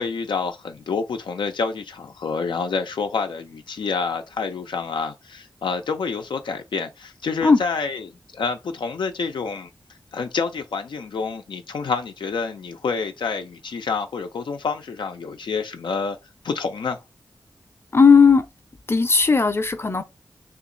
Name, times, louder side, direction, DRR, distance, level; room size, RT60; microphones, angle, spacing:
voice 1, 0.0-9.7 10.1-16.2 16.4-17.0, left 5 dB, 90° left, 0.5 m, -28 dB
voice 2, 17.9-18.4 18.9-20.0, left 5 dB, 30° left, 0.6 m, -15 dB
2.9 x 2.5 x 3.7 m
cardioid pair, 55°, 8 cm